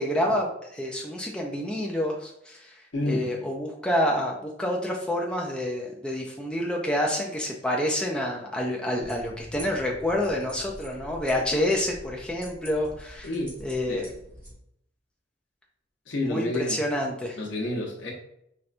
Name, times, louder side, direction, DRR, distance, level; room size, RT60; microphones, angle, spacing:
voice 1, 0.0-2.8 3.1-13.3 13.6-14.0 16.2-17.4, left 1 dB, 5° left, -1 dB, 0.3 m, -28 dB
voice 2, 2.9-3.3 13.2-13.5 13.9-14.1 16.1-16.8 17.4-18.1, left 1 dB, 75° left, -1 dB, 0.8 m, -29 dB
sound 1, 9.0-14.5, equal, 10° right, 1.0 m, -45 dB
4.2 x 2.2 x 2.5 m, 0.77 s
head